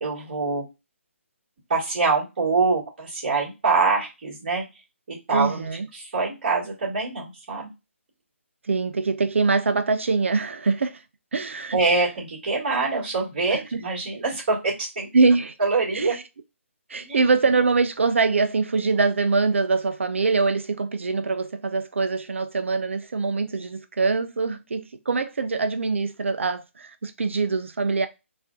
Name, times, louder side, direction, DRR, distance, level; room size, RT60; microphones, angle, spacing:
voice 1, 0.0-0.6 1.7-4.6 5.1-5.6 5.9-7.7 11.7-15.1 15.6-16.1 17.0-17.2, right 4 dB, 45° right, 2.2 m, -24 dB
voice 2, 5.3-5.9 8.7-11.0 11.3-11.8 13.5-13.6 15.1-15.5 15.9-16.2 16.9-28.1, right 4 dB, 65° right, 0.4 m, -23 dB
4.2 x 2.5 x 2.4 m
figure-of-eight pair, 140°, 7 cm